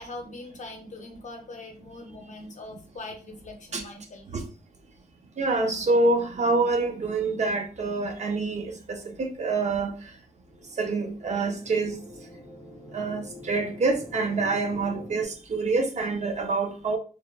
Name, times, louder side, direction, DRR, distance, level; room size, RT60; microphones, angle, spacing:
voice 1, 0.0-4.2, left 2 dB, 55° left, 0.6 m, -41 dB
voice 2, 5.4-9.9 10.8-12.0 12.9-17.0, right 3 dB, 50° right, 0.5 m, -26 dB
sound 1, 10.3-15.2, left 1 dB, 20° left, 0.8 m, -45 dB
2.7 x 2.2 x 2.3 m
wide cardioid pair, 90°, 15 cm